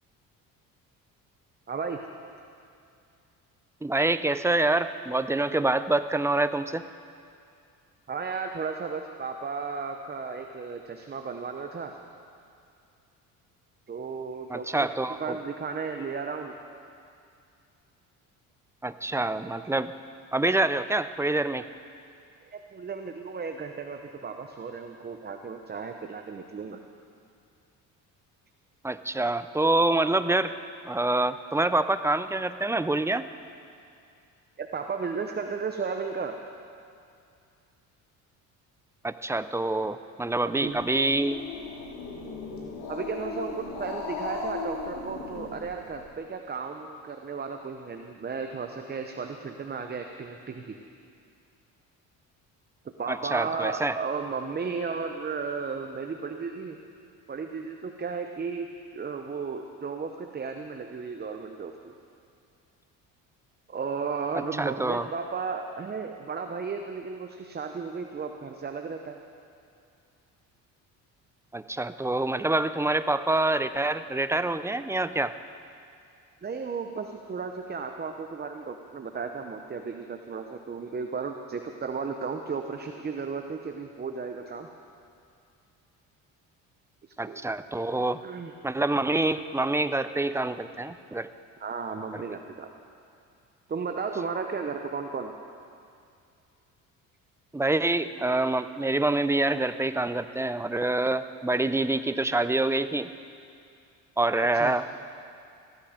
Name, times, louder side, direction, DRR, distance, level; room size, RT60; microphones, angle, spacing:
voice 1, 1.7-2.0 8.1-12.0 13.9-14.9 15.2-16.5 22.4-26.8 34.6-36.4 40.4-40.8 42.9-50.8 53.0-56.8 57.3-58.7 58.9-61.9 63.7-69.2 76.4-84.7 87.3-87.4 88.2-88.5 91.6-92.7 93.7-95.3 104.4-104.7, right 5 dB, 25° right, 5 dB, 0.8 m, -34 dB
voice 2, 3.8-6.8 14.5-15.4 18.8-19.9 20.3-21.6 28.8-30.5 30.8-33.3 39.0-41.4 53.1-54.0 64.3-65.1 71.5-75.3 87.2-88.2 88.6-91.3 97.5-103.1 104.2-104.8, right 2 dB, 5° right, 12 dB, 0.4 m, -26 dB
Growling, 40.7-46.0, left 4 dB, 85° left, 2.6 m, -37 dB
15.5 x 12.0 x 5.0 m, 2.4 s
supercardioid pair, 80°, 38 cm